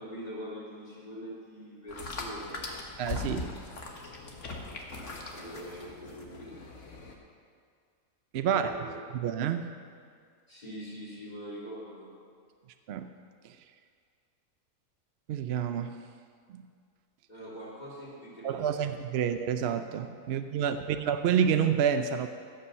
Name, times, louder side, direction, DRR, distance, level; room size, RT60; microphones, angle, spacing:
voice 1, 0.0-2.7 5.0-6.6 8.5-8.9 10.5-12.1 17.3-18.9 20.2-20.3, equal, 30° left, -7 dB, 3.1 m, -43 dB
sound 1, 1.9-7.1, left 3 dB, 60° left, 1.6 m, -40 dB
voice 2, 3.0-3.5 8.3-8.8 9.1-9.7 12.9-13.1 13.4-13.6 15.3-15.9 16.5-16.6 18.4-22.3, right 8 dB, 65° right, 8 dB, 0.7 m, -28 dB
16.0 x 5.7 x 6.9 m, 2.1 s
omnidirectional pair, 1.5 m